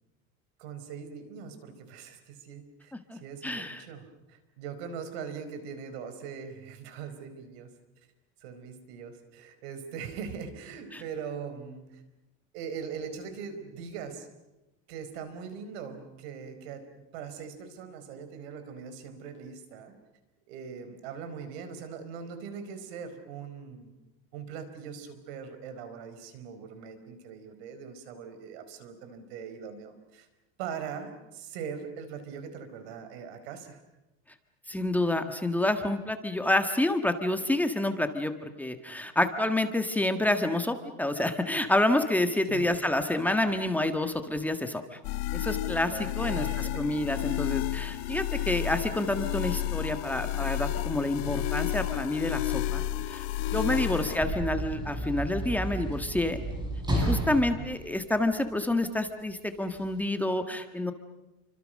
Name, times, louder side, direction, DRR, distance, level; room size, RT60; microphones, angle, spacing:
voice 1, 0.6-7.8 8.4-12.0 12.5-14.3 14.9-19.9 20.5-23.9 24.3-30.3 30.6-33.8 42.5-42.7 45.9-47.0 53.6-54.2 57.5-57.8, right 6 dB, 80° right, 10 dB, 4.8 m, -41 dB
voice 2, 2.9-3.8 10.9-11.0 34.7-45.0 45.3-53.3 53.5-56.4 56.9-60.9, left 1 dB, 5° left, 6 dB, 1.6 m, -28 dB
sound 1, 45.0-54.2, left 13 dB, 85° left, 1.0 m, -31 dB
Sliding door / Slam, 53.4-58.8 59.7-59.9, right 1 dB, 15° right, 7.2 m, -32 dB
30.0 x 25.0 x 6.6 m, 1.0 s
cardioid pair, 145°, 31 cm